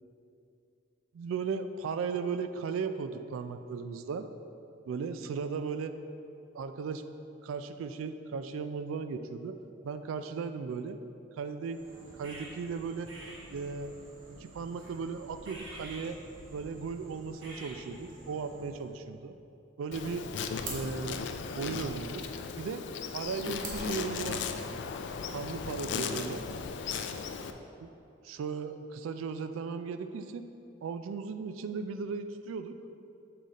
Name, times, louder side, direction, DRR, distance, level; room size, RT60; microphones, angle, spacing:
voice 1, 1.1-4.3 4.9-5.9 6.5-7.0 7.4-9.6 9.8-11.0 11.4-11.8 12.2-13.1 13.5-14.0 14.3-16.2 16.5-19.3 19.8-20.3 20.7-22.2 22.6-22.8 23.1-24.8 25.3-26.4 27.8-27.9 28.2-30.4 30.8-32.8, right 5 dB, 90° right, 10 dB, 0.3 m, -36 dB
sound 1, 11.6-18.9, right 1 dB, 70° right, 1.1 m, -49 dB
Insect, 19.9-27.5, left 6 dB, 60° left, 0.3 m, -37 dB
sound 2, 19.9-24.9, right 2 dB, 45° right, 1.0 m, -48 dB
6.7 x 3.8 x 4.0 m, 2.6 s
head